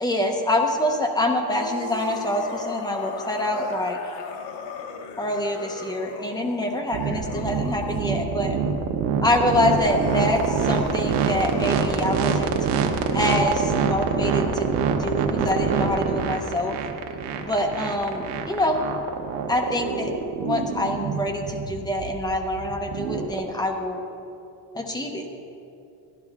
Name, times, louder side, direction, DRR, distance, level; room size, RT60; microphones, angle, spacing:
voice 1, 0.0-4.0 5.2-8.6 9.2-12.5 13.1-14.7 15.0-16.8 17.4-18.8 19.5-20.1 20.4-24.0 24.7-25.3, left 1 dB, 10° left, 2 dB, 0.8 m, -25 dB
sound 1, 1.5-8.0 9.4-13.8, left 6 dB, 65° left, 1.0 m, -38 dB
sound 2, 6.9-23.4, right 6 dB, 70° right, 1.0 m, -25 dB
14.0 x 11.0 x 3.6 m, 2.6 s
cardioid pair, 165°, 43 cm